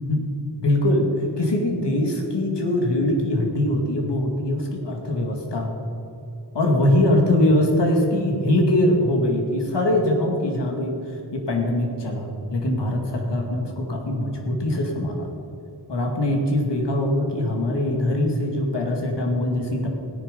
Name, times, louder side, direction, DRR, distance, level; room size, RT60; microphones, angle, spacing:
voice 1, 0.6-1.1 1.4-5.7 6.5-11.0 11.3-15.3 15.9-19.9, left 1 dB, 75° left, 2 dB, 2.4 m, -22 dB
16.5 x 10.5 x 5.3 m, 2.9 s
wide cardioid pair, 75°, 42 cm